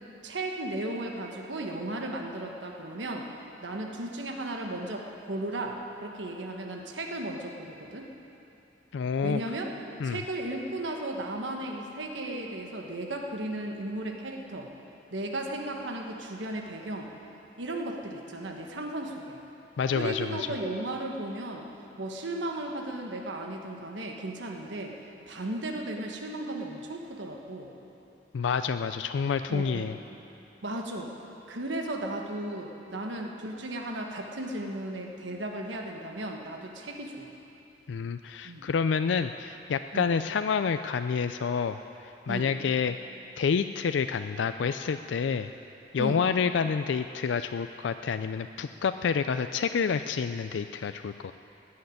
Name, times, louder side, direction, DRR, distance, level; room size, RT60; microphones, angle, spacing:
voice 1, 0.2-3.3 3.6-8.1 9.2-9.7 10.0-14.7 15.1-17.1 17.6-19.4 19.9-21.7 22.0-25.0 25.3-27.7 29.5-29.9 30.6-31.1 31.5-37.3 38.4-38.7 39.9-40.1 42.3-42.5 46.0-46.2, right 1 dB, 80° right, 2 dB, 1.3 m, -35 dB
voice 2, 8.9-9.4 10.0-10.2 19.8-20.5 28.3-30.0 37.9-41.8 42.3-43.0 43.4-45.5 45.9-51.3, left 6 dB, 80° left, 9 dB, 0.4 m, -28 dB
18.0 x 6.5 x 9.8 m, 2.9 s
head